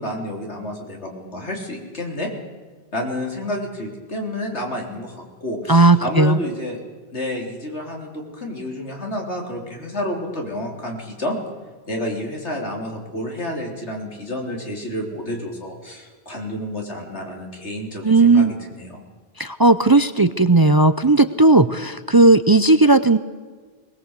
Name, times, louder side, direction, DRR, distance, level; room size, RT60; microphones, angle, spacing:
voice 1, 0.0-2.3 2.9-6.8 7.1-11.4 11.9-19.0, left 1 dB, 90° left, 1 dB, 4.2 m, -30 dB
voice 2, 5.7-6.4 18.0-18.5 19.4-23.2, right 2 dB, 25° right, 12 dB, 0.5 m, -15 dB
21.0 x 20.5 x 8.2 m, 1.5 s
omnidirectional pair, 1.1 m